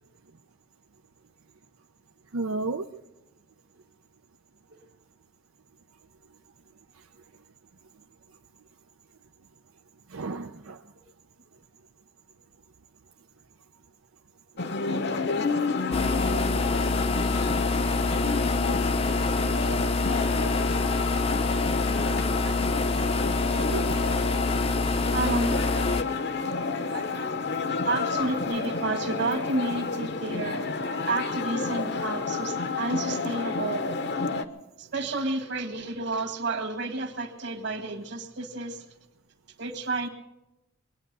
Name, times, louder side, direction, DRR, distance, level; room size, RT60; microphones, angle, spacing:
voice 1, 2.3-2.9 10.1-10.8 20.5-20.7 22.4-22.7 23.5-24.0 26.9-27.2, right 3 dB, 80° right, 5 dB, 0.7 m, -34 dB
sound 1, 14.6-34.4, left 4 dB, 55° left, 0.9 m, -30 dB
sound 2, 15.9-26.0, left 3 dB, 30° left, 0.6 m, -26 dB
voice 2, 24.9-26.0 27.4-30.6 31.1-33.9 34.8-39.0 39.6-40.1, right 2 dB, 55° right, 6 dB, 1.8 m, -32 dB
22.5 x 9.5 x 6.8 m, 0.94 s
head